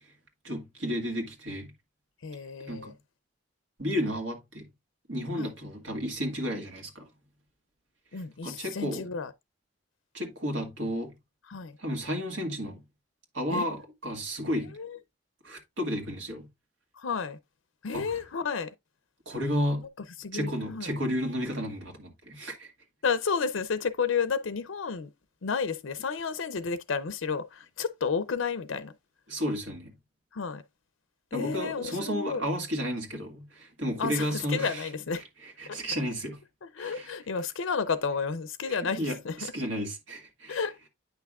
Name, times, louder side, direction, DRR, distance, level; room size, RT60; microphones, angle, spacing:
voice 1, 0.4-1.7 2.6-2.9 3.8-4.7 5.1-7.1 8.4-9.1 10.1-11.1 11.8-12.8 13.3-14.8 15.4-16.5 17.9-18.1 19.3-19.8 20.3-22.7 29.3-29.9 31.3-34.9 35.6-36.4 36.8-37.1 38.7-40.6, equal, 75° right, 2.0 m, -32 dB
voice 2, 2.2-2.9 5.4-5.5 8.1-9.3 11.5-11.8 13.5-13.7 14.6-15.0 17.0-17.4 17.8-18.7 19.8-19.9 20.2-20.9 23.0-25.1 25.4-28.9 30.3-30.6 31.3-32.4 34.0-35.2 35.7-35.8 36.6-39.4 40.5-40.9, left 5 dB, 85° left, 0.6 m, -31 dB
9.0 x 5.8 x 2.4 m
head